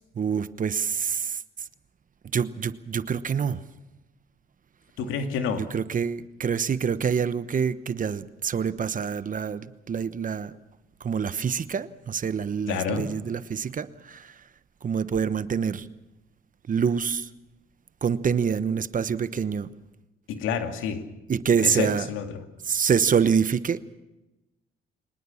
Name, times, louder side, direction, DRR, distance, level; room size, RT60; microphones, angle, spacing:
voice 1, 0.2-1.4 2.3-3.6 5.6-10.5 11.0-14.3 14.8-15.9 16.7-17.3 18.0-19.7 21.3-22.1 22.7-23.9, right 7 dB, 40° right, 1.1 m, -26 dB
voice 2, 5.0-5.7 12.7-13.1 20.3-21.1 21.6-22.4, left 7 dB, 90° left, 2.5 m, -29 dB
24.0 x 20.0 x 7.2 m
cardioid pair, 90°, 20 cm